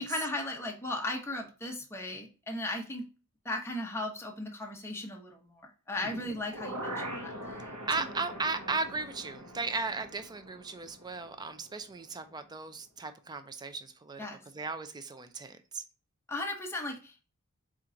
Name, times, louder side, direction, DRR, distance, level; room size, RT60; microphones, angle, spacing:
voice 1, 0.0-3.0 3.4-5.6 5.9-7.3 8.0-8.1 14.2-14.4 16.3-17.2, left 1 dB, 10° left, 1 dB, 0.7 m, -36 dB
sound 1, 5.9-12.0 12.3-12.4, right 1 dB, 90° right, 0.9 m, -43 dB
voice 2, 7.9-14.2 14.5-15.8, right 3 dB, 20° right, 9 dB, 0.4 m, -36 dB
4.4 x 2.4 x 3.7 m, 0.36 s
head